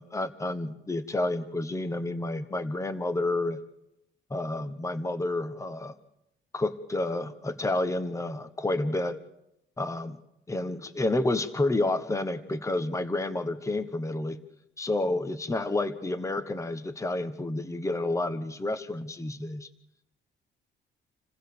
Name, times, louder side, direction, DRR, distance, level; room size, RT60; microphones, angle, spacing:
voice 1, 0.0-3.6 4.3-5.9 6.5-9.2 9.8-10.2 10.5-14.4 14.8-19.7, left 2 dB, 15° left, 10 dB, 1.3 m, -30 dB
28.5 x 15.5 x 6.9 m, 0.85 s
cardioid pair, 90°, 20 cm